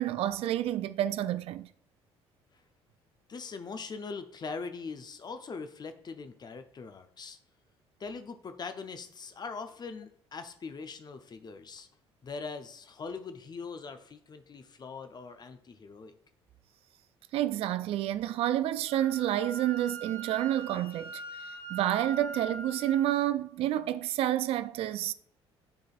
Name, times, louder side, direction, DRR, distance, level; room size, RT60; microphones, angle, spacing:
voice 1, 0.0-1.7 17.3-21.2 21.7-25.1, right 12 dB, 45° right, 0.3 m, -29 dB
voice 2, 3.3-7.4 8.0-11.9 12.2-16.2, left 4 dB, 30° left, 0.6 m, -41 dB
Wind instrument woodwind instrument, 18.9-23.1, right 4 dB, 70° left, 0.8 m, -42 dB
10.5 x 3.9 x 2.4 m
figure-of-eight pair, 50°, 14 cm